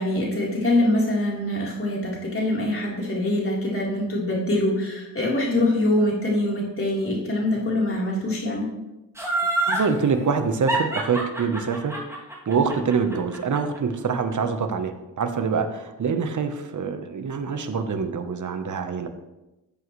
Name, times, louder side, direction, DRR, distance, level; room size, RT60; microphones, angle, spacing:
voice 1, 0.0-8.7, left 1 dB, 35° left, -4 dB, 3.9 m, -24 dB
Laughter, 9.2-9.9 10.7-13.8 14.1-14.2, right 2 dB, 5° right, 2.7 m, -26 dB
voice 2, 9.7-11.9 12.4-19.1, right 5 dB, 55° right, 8 dB, 1.1 m, -25 dB
13.5 x 7.8 x 3.2 m, 1.0 s
cardioid pair, 80°, 37 cm